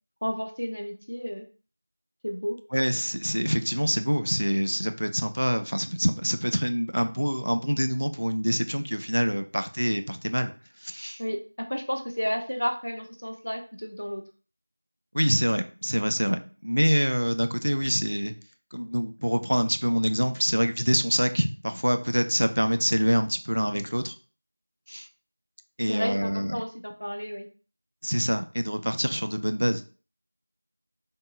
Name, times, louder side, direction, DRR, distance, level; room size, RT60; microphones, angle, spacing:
voice 1, 0.2-1.5 2.2-2.6 11.2-14.2 25.9-27.5, equal, 55° left, 5 dB, 0.6 m, -32 dB
voice 2, 2.7-11.2 15.1-18.3 18.7-24.1 24.9-25.1 25.8-26.6 28.0-29.8, equal, 70° right, 9 dB, 0.4 m, -26 dB
3.6 x 2.0 x 3.6 m, 0.37 s
figure-of-eight pair, 180°, 0 cm